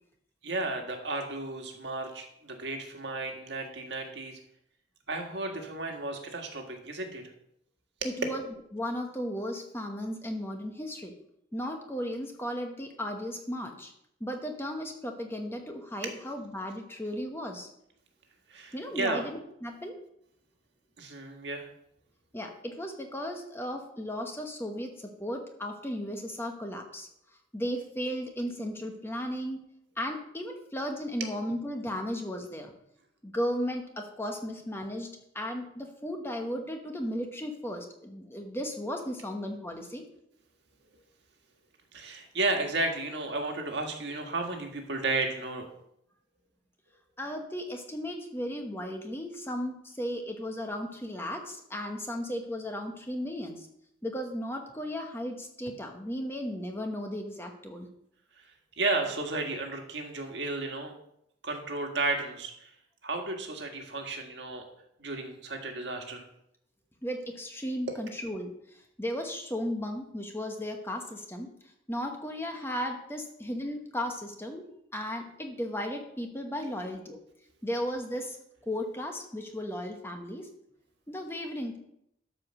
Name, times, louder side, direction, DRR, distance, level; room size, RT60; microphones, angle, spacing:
voice 1, 0.4-4.4 5.1-7.2 8.0-8.1 16.0-16.2 18.5-19.2 21.0-21.7 41.9-45.7 58.8-60.9 61.4-62.7 63.0-64.7 65.0-66.2 67.9-68.0, right 2 dB, 60° right, 3 dB, 1.7 m, -33 dB
voice 2, 8.0-8.4 8.7-11.1 11.5-13.9 14.2-17.7 18.7-20.0 22.3-27.1 27.5-29.6 30.0-32.7 33.2-35.1 35.3-40.0 47.2-53.7 54.0-57.9 67.0-71.5 71.9-77.2 77.6-78.4 78.7-80.5 81.1-81.8, equal, 10° left, 3 dB, 1.1 m, -35 dB
12.5 x 5.0 x 6.4 m, 0.75 s
head